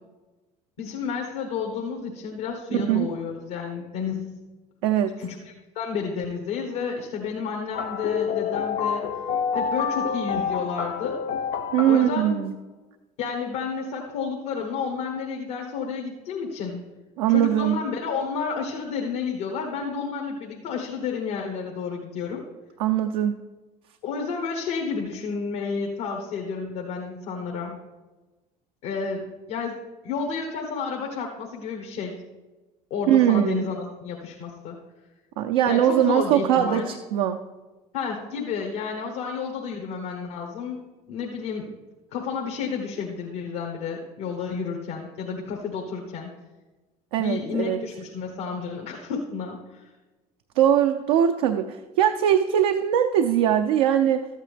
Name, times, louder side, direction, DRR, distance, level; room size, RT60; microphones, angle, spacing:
voice 1, 0.8-4.4 5.2-5.4 5.7-9.1 9.5-11.2 11.9-12.4 13.2-16.8 17.3-22.4 24.0-27.8 28.8-29.8 30.0-32.2 32.9-34.8 35.7-36.9 37.9-41.7 42.1-46.3 47.2-49.8, left 5 dB, 70° left, 0 dB, 1.4 m, -31 dB
voice 2, 4.8-5.1 11.7-12.5 17.2-17.8 22.8-23.4 33.1-33.7 35.4-37.4 47.1-47.8 50.6-54.3, right 10 dB, 75° right, 6 dB, 0.6 m, -21 dB
sound 1, 7.7-12.3, left 6 dB, 55° left, 0.8 m, -28 dB
13.0 x 8.7 x 3.4 m, 1.2 s
hypercardioid pair, 65°, 20 cm